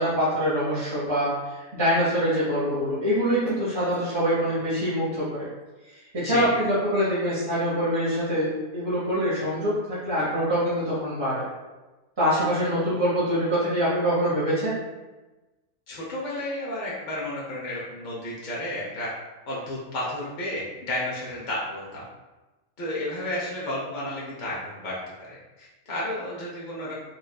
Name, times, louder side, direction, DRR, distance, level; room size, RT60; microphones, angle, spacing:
voice 1, 0.0-5.5 5.9-11.4 12.2-14.8, equal, 25° right, -9 dB, 0.7 m, -25 dB
voice 2, 6.2-6.5 15.9-19.1 19.5-22.1 22.8-26.9, left 1 dB, 55° left, -6 dB, 0.5 m, -32 dB
4.6 x 2.4 x 2.2 m, 1.1 s
omnidirectional pair, 1.6 m